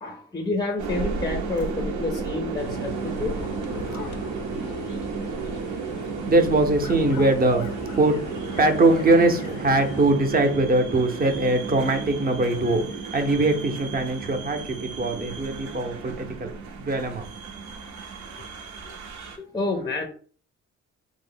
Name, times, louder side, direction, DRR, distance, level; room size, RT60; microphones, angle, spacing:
voice 1, 0.0-3.3 18.9-20.1, left 3 dB, 15° left, 0.5 m, -29 dB
sound 1, 0.8-19.4, right 4 dB, 70° right, 0.7 m, -33 dB
sound 2, 2.6-10.1, left 5 dB, 90° left, 0.5 m, -40 dB
voice 2, 3.7-4.4 5.9-16.5 16.8-17.3, right 2 dB, 30° right, 0.7 m, -22 dB
3.1 x 2.1 x 3.7 m
cardioid pair, 90°, 30 cm